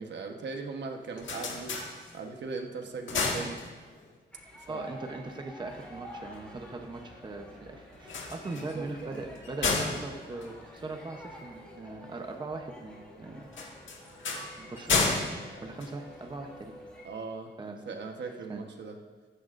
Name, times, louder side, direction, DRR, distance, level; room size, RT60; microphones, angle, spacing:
voice 1, 0.0-1.8 2.1-3.6 4.5-4.9 8.5-9.2 17.0-19.0, right 4 dB, 65° right, 3 dB, 1.2 m, -39 dB
sound 1, 0.9-2.5 2.8-4.2 7.9-11.4 13.5-16.6, left 3 dB, 80° left, 1.8 m, -33 dB
sound 2, 4.3-17.0, equal, 5° left, 2.9 m, -50 dB
voice 2, 4.7-13.5 14.6-15.0 15.6-16.7 17.6-17.8 18.5-18.6, right 3 dB, 25° right, 3 dB, 0.8 m, -40 dB
14.5 x 14.5 x 2.6 m, 1.4 s
wide cardioid pair, 170°, 19 cm